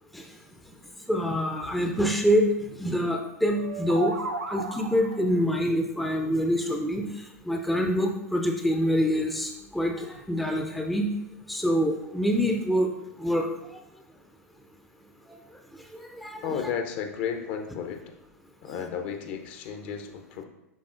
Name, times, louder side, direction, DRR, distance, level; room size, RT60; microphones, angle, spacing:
voice 1, 1.1-4.1 4.5-7.1 7.4-11.1 11.5-12.9 13.2-13.5 15.9-16.6, equal, ahead, 2 dB, 0.5 m, -26 dB
sound 1, 3.5-5.3, right 3 dB, 85° right, 0.5 m, -34 dB
voice 2, 16.4-18.0 18.6-20.4, left 7 dB, 45° left, 6 dB, 0.7 m, -33 dB
10.5 x 3.5 x 2.5 m, 0.87 s
figure-of-eight pair, 95°, 8 cm